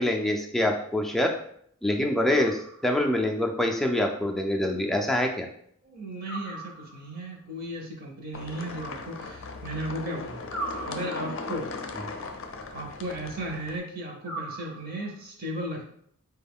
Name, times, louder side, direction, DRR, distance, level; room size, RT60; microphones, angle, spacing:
voice 1, 0.0-1.3 1.8-5.5, left 1 dB, ahead, 2 dB, 0.3 m, -25 dB
sound 1, 2.3-3.1 6.2-7.3 10.5-11.6 14.2-15.2, right 2 dB, 90° right, 1.1 m, -39 dB
voice 2, 5.8-10.5 10.8-11.7 12.7-15.8, right 1 dB, 45° right, 1 dB, 0.7 m, -35 dB
sound 2, 8.3-13.8, left 3 dB, 60° left, 0.5 m, -38 dB
4.3 x 2.3 x 3.5 m, 0.66 s
head